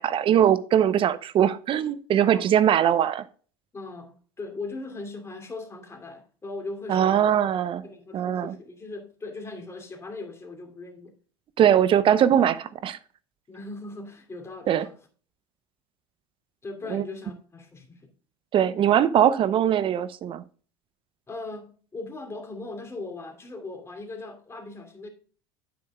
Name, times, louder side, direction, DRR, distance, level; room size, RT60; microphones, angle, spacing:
voice 1, 0.0-3.2 6.9-7.8 8.1-8.5 11.6-13.0 14.7-14.9 16.9-17.0 18.5-20.4, right 10 dB, 45° right, 0.7 m, -21 dB
voice 2, 2.2-2.5 2.9-3.0 3.7-7.4 7.8-11.1 13.5-15.0 16.6-18.1 21.3-25.1, left 3 dB, 20° left, 2.6 m, -39 dB
9.5 x 7.9 x 2.3 m
hypercardioid pair, 90°, 13 cm